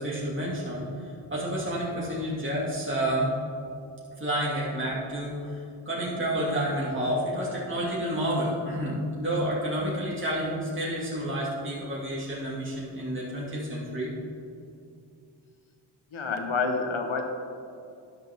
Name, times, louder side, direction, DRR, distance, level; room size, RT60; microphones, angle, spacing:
voice 1, 0.0-3.3 4.2-14.1, right 1 dB, 25° right, -7 dB, 2.5 m, -30 dB
voice 2, 16.1-17.2, left 4 dB, 75° left, 4 dB, 1.2 m, -28 dB
12.0 x 10.5 x 3.6 m, 2.5 s
wide cardioid pair, 85°, 47 cm